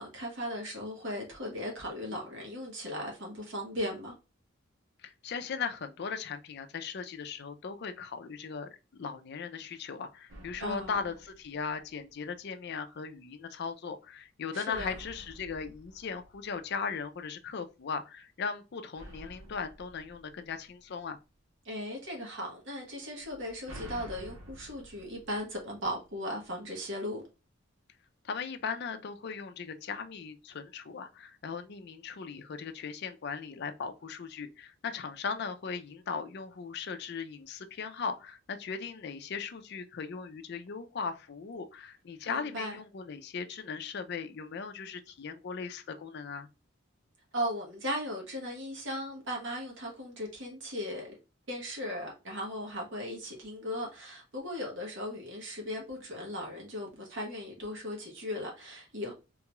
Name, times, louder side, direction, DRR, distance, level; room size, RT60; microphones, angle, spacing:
voice 1, 0.0-4.2 10.6-11.1 14.5-15.0 21.6-27.2 42.2-42.8 47.3-51.2 51.5-59.1, equal, 65° right, 1.2 m, -37 dB
voice 2, 5.0-21.2 28.2-46.5, left 5 dB, 55° left, 0.4 m, -38 dB
sound 1, 10.3-12.2 14.7-17.1 19.0-21.2 23.2-26.2, right 1 dB, 90° right, 0.8 m, -50 dB
3.7 x 2.3 x 3.0 m
head